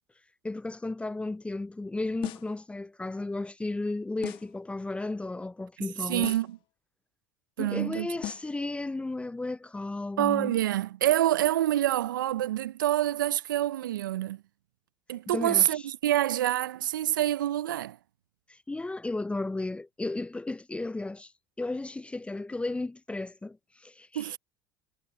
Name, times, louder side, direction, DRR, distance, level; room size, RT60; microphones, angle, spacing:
voice 1, 0.4-6.3 7.6-10.6 15.3-15.8 18.5-21.3 21.6-24.4, left 2 dB, 10° left, 0.6 m, -34 dB
sound 1, 2.2-2.6 4.2-4.6 6.2-6.6 8.2-8.6, left 17 dB, 55° left, 1.6 m, -38 dB
voice 2, 6.1-6.6 7.6-8.1 10.2-14.4 15.1-18.0 24.1-24.4, right 13 dB, 80° right, 0.7 m, -26 dB
hypercardioid pair, 70°, 11 cm